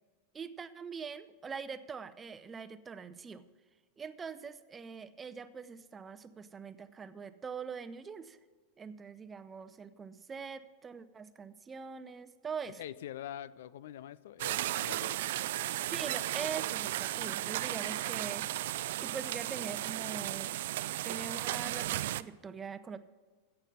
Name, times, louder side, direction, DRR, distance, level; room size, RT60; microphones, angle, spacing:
voice 1, 0.3-3.4 4.0-8.4 8.8-12.8 15.9-20.5 21.0-23.0, right 6 dB, 20° right, 12 dB, 0.7 m, -43 dB
voice 2, 12.8-15.2, left 11 dB, 65° left, 20 dB, 0.3 m, -44 dB
sound 1, 14.4-22.2, right 15 dB, 60° right, 0.3 m, -35 dB
16.5 x 6.8 x 5.6 m, 1.4 s
figure-of-eight pair, 90°, 0 cm